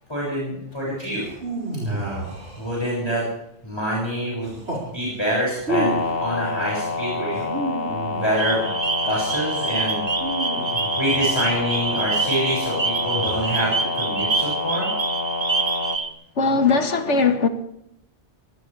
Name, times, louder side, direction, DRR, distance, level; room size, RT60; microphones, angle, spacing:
voice 1, 0.1-1.3 1.8-2.3 2.6-3.2 3.6-4.6 4.9-5.9 6.2-7.5 8.1-8.7 9.0-10.0 11.0-14.9, equal, 20° left, 6.8 m, -26 dB
sound 1, 1.2-3.2 4.4-4.9 5.6-6.3 7.3-8.7 10.1-11.4 12.9-13.7, right 2 dB, 70° right, 6.1 m, -31 dB
sound 2, 5.7-16.0, left 3 dB, 55° left, 1.9 m, -28 dB
sound 3, 8.4-16.1, right 4 dB, 35° right, 1.3 m, -26 dB
voice 2, 16.4-17.5, left 4 dB, 75° left, 2.1 m, -19 dB
24.0 x 17.0 x 3.5 m
omnidirectional pair, 1.2 m